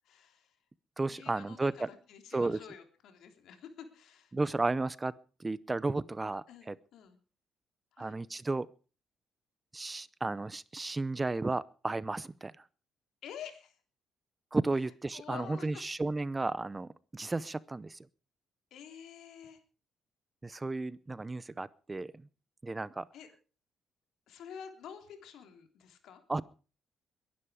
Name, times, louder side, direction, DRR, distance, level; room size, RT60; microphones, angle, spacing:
voice 1, 0.0-0.6 1.1-4.3 6.5-7.2 7.9-8.2 13.2-13.8 15.1-15.8 18.7-19.6 23.1-23.3 24.3-26.2, left 8 dB, 80° left, 6 dB, 3.4 m, -49 dB
voice 2, 1.0-1.9 2.3-2.6 4.3-5.1 5.4-6.8 8.0-8.7 9.7-12.5 14.5-18.0 20.4-22.3 22.6-23.1 26.3-26.4, right 3 dB, 20° right, 19 dB, 0.7 m, -33 dB
22.0 x 11.5 x 4.9 m, 0.37 s
cardioid pair, 90°, 0 cm